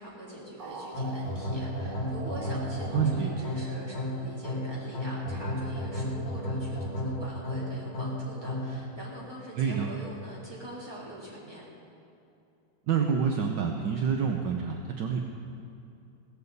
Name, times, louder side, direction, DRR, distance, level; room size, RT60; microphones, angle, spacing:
voice 1, 0.0-11.7, right 1 dB, 10° right, -7 dB, 3.3 m, -43 dB
sound 1, 0.6-5.1, right 4 dB, 40° right, 0.7 m, -45 dB
sound 2, 0.9-8.8, equal, 60° left, 3.0 m, -33 dB
voice 2, 2.9-3.3 9.6-9.9 12.9-15.2, right 6 dB, 65° right, 2 dB, 1.4 m, -27 dB
17.5 x 14.5 x 4.1 m, 2.7 s
omnidirectional pair, 2.2 m